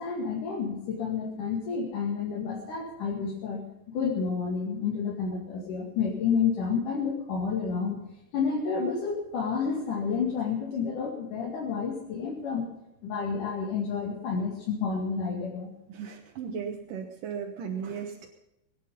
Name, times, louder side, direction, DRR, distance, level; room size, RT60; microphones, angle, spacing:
voice 1, 0.0-3.6 3.9-8.0 8.3-12.7 13.0-15.7, left 5 dB, 75° left, -3 dB, 3.9 m, -30 dB
voice 2, 15.9-18.3, right 7 dB, 85° right, 1 dB, 2.9 m, -36 dB
21.0 x 10.5 x 5.5 m, 0.85 s
omnidirectional pair, 3.7 m